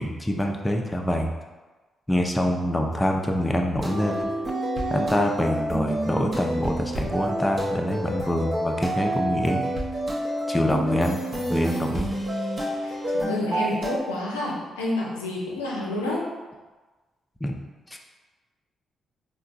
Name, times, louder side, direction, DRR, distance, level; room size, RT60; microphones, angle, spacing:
voice 1, 0.0-1.3 2.1-4.3 4.9-9.7 10.5-11.2 11.5-12.1 17.4-17.5 17.9-18.0, equal, 15° left, 2 dB, 0.5 m, -25 dB
sound 1, 3.8-14.0, right 1 dB, 45° right, 0.8 m, -28 dB
voice 2, 12.8-16.2, left 1 dB, 90° left, -4 dB, 0.5 m, -29 dB
4.4 x 2.2 x 2.5 m, 1.2 s
hypercardioid pair, 40°, 0 cm